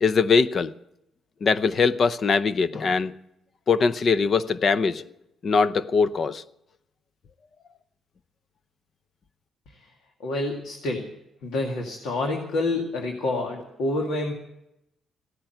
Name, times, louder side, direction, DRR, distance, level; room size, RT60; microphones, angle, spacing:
voice 1, 0.0-0.7 1.4-3.1 3.7-5.1 5.4-6.4, left 5 dB, 45° left, 0.7 m, -22 dB
voice 2, 10.2-11.1 11.4-14.3, left 2 dB, 80° left, 2.1 m, -28 dB
16.0 x 10.0 x 7.8 m
cardioid pair, 90°, 0 cm